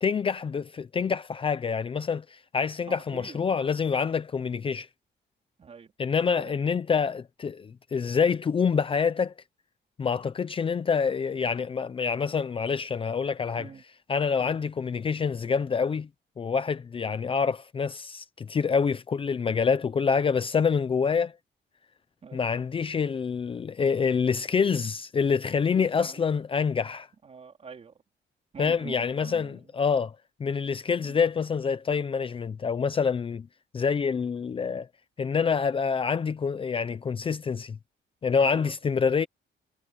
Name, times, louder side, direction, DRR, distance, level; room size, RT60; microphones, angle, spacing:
voice 1, 0.0-4.9 6.0-9.3 10.0-13.7 14.1-16.1 16.4-21.3 22.3-27.1 28.6-33.5 33.7-34.9 35.2-37.8 38.2-39.3, left 6 dB, 30° left, 0.6 m, -26 dB
voice 2, 2.9-3.4 5.6-5.9 6.3-6.5 13.6-13.8 14.4-14.6 22.2-22.4 25.7-26.2 27.2-27.9 28.5-29.7 31.0-31.2 38.4-38.7, right 6 dB, 35° right, 4.0 m, -45 dB
wide cardioid pair, 180°, 19 cm